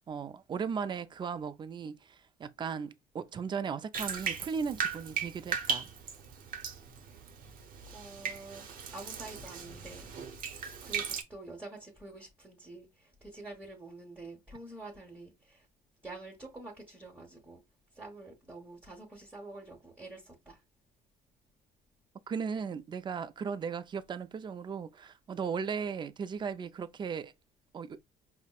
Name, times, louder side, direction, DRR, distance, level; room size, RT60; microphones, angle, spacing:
voice 1, 0.1-5.9 22.3-27.3 27.7-28.0, right 6 dB, 25° right, 0.3 m, -37 dB
Bathtub (filling or washing), 3.9-11.2, right 6 dB, 55° right, 0.8 m, -37 dB
voice 2, 7.9-10.1 10.4-15.7 16.0-17.6 17.9-20.6, right 2 dB, 10° right, 1.2 m, -47 dB
5.1 x 2.1 x 2.3 m
cardioid pair, 110°, 17 cm